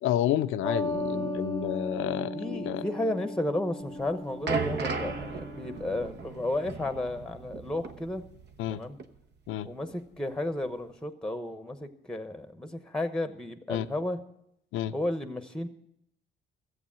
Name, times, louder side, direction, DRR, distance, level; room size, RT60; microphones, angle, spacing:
voice 1, 0.0-2.8 8.6-8.8 9.5-9.7 13.7-13.9 14.7-14.9, left 12 dB, 90° left, 13 dB, 0.6 m, -30 dB
sound 1, 0.6-5.8, left 2 dB, 20° left, 0.6 m, -37 dB
sound 2, 0.9-5.2, right 4 dB, 35° right, 1.3 m, -41 dB
voice 2, 2.3-8.2 8.7-9.0 9.6-14.2 14.9-15.7, left 1 dB, 5° left, 9 dB, 1.0 m, -33 dB
sound 3, 3.9-8.7 9.0-9.2 9.9-10.0, right 4 dB, 60° right, 1.1 m, -36 dB
14.0 x 8.0 x 7.4 m, 0.78 s
cardioid pair, 90°, 20 cm